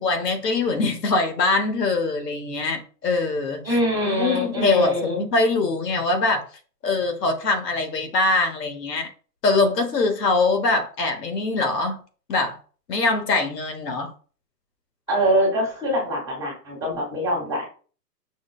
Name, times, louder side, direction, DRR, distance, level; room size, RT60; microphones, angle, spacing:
voice 1, 0.0-3.8 4.1-6.5 6.8-9.1 9.4-12.0 12.3-12.6 12.9-14.1, left 3 dB, 75° left, 1.1 m, -23 dB
voice 2, 3.6-5.2 15.1-17.6, equal, 5° left, 0.6 m, -24 dB
6.1 x 2.1 x 2.2 m
hypercardioid pair, 165°, 50 cm